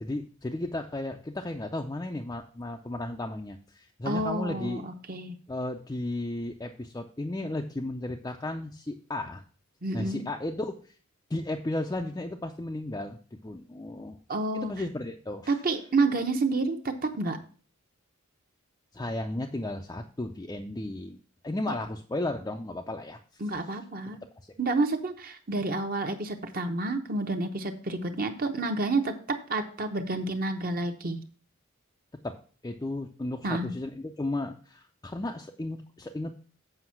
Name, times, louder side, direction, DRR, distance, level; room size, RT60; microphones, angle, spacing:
voice 1, 0.0-4.8 5.5-9.4 9.9-10.9 11.3-14.2 14.5-15.6 18.9-21.2 21.4-23.4 23.7-23.8 32.2-32.4 32.6-36.3, left 2 dB, 15° left, 3 dB, 0.4 m, -34 dB
voice 2, 4.1-5.3 9.8-10.2 14.3-14.7 15.5-17.4 21.7-21.8 23.4-24.2 24.6-31.2 33.4-33.7, right 3 dB, 40° right, 6 dB, 0.9 m, -29 dB
7.9 x 5.3 x 5.7 m, 0.42 s
head